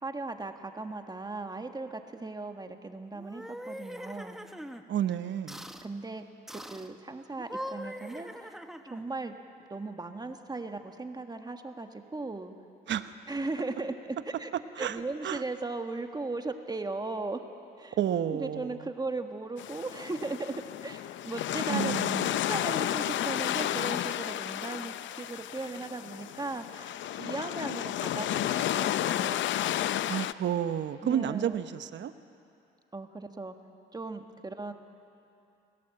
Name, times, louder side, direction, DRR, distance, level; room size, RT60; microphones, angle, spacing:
voice 1, 0.0-4.4 5.8-8.6 8.9-9.3 9.7-12.5 13.3-14.5 14.8-17.4 17.8-18.0 18.3-20.5 20.8-22.0 22.3-29.6 31.0-31.6 32.9-33.5 33.9-34.7, right 3 dB, 20° right, 6 dB, 1.6 m, -37 dB
sound 1, 3.1-4.8 5.5-5.9 6.5-6.9 7.4-9.1, equal, ahead, 1.2 m, -42 dB
voice 2, 4.9-5.6 12.9-13.1 14.8-15.4 18.0-18.8 21.7-22.3 30.1-32.1, right 10 dB, 65° right, 11 dB, 1.1 m, -31 dB
sound 2, 19.6-30.3, left 12 dB, 70° left, 0.6 m, -32 dB
28.5 x 17.5 x 7.8 m, 2.6 s
cardioid pair, 90°, 20 cm